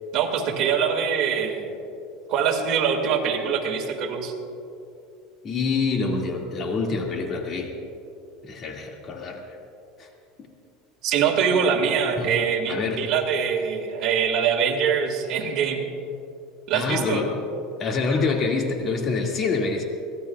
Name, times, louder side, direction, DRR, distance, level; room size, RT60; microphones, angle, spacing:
voice 1, 0.1-1.8 2.3-4.3 11.0-15.8 16.7-17.3, right 7 dB, 55° right, 2 dB, 2.2 m, -23 dB
voice 2, 5.4-7.7 8.4-9.4 10.0-10.1 12.2-12.3 12.7-13.0 16.7-17.3 17.8-19.8, left 4 dB, 40° left, 1 dB, 2.1 m, -26 dB
23.5 x 17.5 x 2.4 m, 2.6 s
supercardioid pair, 120°, 0 cm